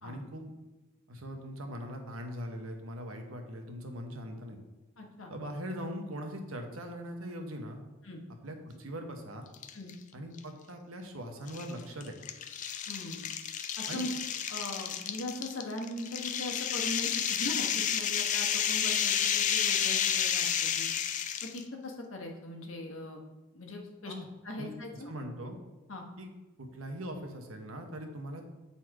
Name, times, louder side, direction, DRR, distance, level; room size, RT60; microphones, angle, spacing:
voice 1, 0.0-0.5 1.1-4.6 5.3-7.8 8.4-9.4 10.1-12.2 13.9-14.1 24.1-24.3 24.6-25.6 26.2-26.3 26.6-28.4, equal, 80° right, 4 dB, 1.1 m, -41 dB
voice 2, 5.0-5.3 8.0-8.2 9.7-9.9 12.9-13.2 13.8-14.1 14.5-20.9 21.4-23.2 23.5-24.1 24.4-25.1 25.9-26.0, left 2 dB, 75° left, 1 dB, 1.3 m, -40 dB
sound 1, 9.5-9.9 10.4-10.5 11.5-21.6, left 9 dB, 35° left, 0.3 m, -31 dB
7.9 x 4.2 x 4.8 m, 1.1 s
head